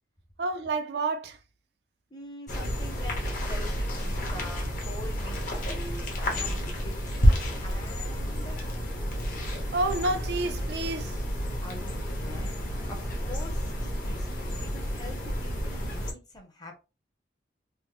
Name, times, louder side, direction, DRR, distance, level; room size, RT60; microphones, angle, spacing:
voice 1, 0.4-1.4 9.7-11.2, right 2 dB, 70° right, 0.4 m, -29 dB
voice 2, 2.1-8.6 11.6-12.6 12.9-16.8, left 1 dB, 20° left, 0.7 m, -45 dB
sound 1, 2.5-16.1, equal, 45° left, 0.9 m, -30 dB
3.2 x 2.0 x 3.1 m
head